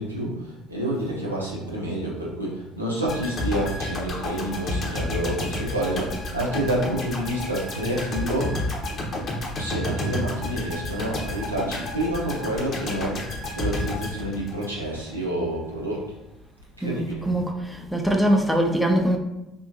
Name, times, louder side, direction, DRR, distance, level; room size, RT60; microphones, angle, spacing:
voice 1, 0.0-8.8 9.6-16.1 16.8-17.2, right 1 dB, 90° right, 0.6 m, -28 dB
sound 1, 3.1-15.1 15.4-15.6, left 1 dB, 40° left, 0.8 m, -31 dB
voice 2, 16.8-19.2, right 1 dB, ahead, 0.5 m, -22 dB
3.5 x 2.6 x 2.6 m
figure-of-eight pair, 55°, 0 cm